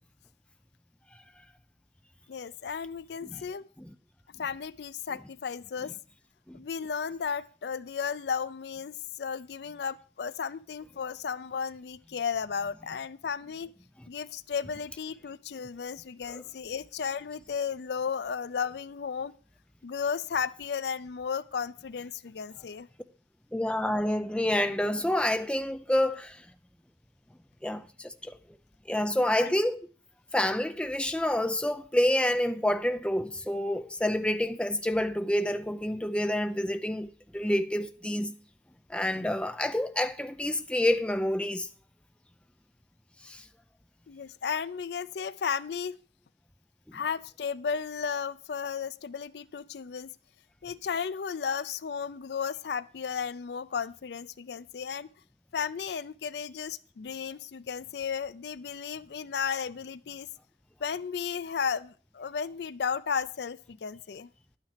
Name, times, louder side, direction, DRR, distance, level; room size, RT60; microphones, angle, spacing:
voice 1, 2.3-3.7 4.4-5.9 6.5-13.7 14.1-19.3 19.8-22.9 29.3-29.6 44.1-46.0 46.9-50.1 50.6-55.1 55.5-60.3 60.8-64.3, left 6 dB, 70° left, 0.4 m, -34 dB
voice 2, 23.5-26.4 27.6-28.4 28.9-29.8 30.3-38.4 38.9-41.7 43.2-43.4 46.9-47.0, left 1 dB, 5° left, 0.5 m, -28 dB
11.0 x 9.2 x 5.0 m
head